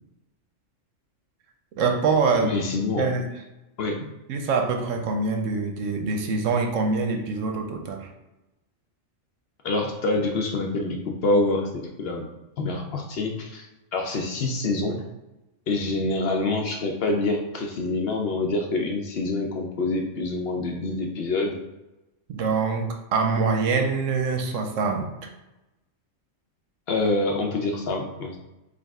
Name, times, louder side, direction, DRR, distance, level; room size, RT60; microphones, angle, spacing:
voice 1, 1.8-2.6 3.0-3.2 4.3-8.1 22.3-25.1, right 4 dB, 80° right, 4 dB, 1.0 m, -24 dB
voice 2, 2.4-3.0 3.8-3.9 9.6-12.3 12.6-13.7 13.9-15.0 15.7-21.6 26.9-28.4, left 2 dB, 60° left, 2 dB, 0.7 m, -26 dB
4.9 x 2.3 x 3.5 m, 1.0 s
omnidirectional pair, 1.3 m